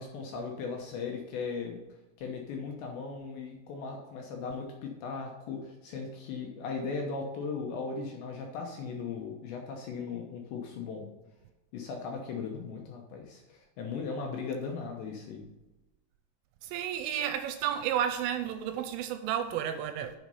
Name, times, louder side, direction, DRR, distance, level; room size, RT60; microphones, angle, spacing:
voice 1, 0.0-1.8 2.2-11.1 11.7-15.4, left 5 dB, 75° left, 1 dB, 2.8 m, -37 dB
voice 2, 16.6-20.1, right 10 dB, 85° right, 8 dB, 3.0 m, -32 dB
7.7 x 6.5 x 5.5 m, 1.0 s
omnidirectional pair, 6.0 m